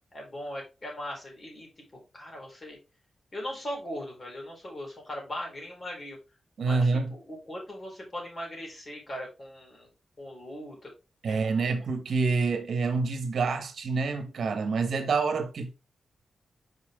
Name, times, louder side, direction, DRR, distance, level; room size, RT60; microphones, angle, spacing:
voice 1, 0.1-2.8 3.3-6.2 6.6-9.9 10.2-10.9 11.3-11.7, left 1 dB, 35° left, 3.9 m, -39 dB
voice 2, 6.6-7.1 11.2-15.7, right 4 dB, 70° right, 1.2 m, -27 dB
5.8 x 5.4 x 3.6 m
wide cardioid pair, 115°, 0 cm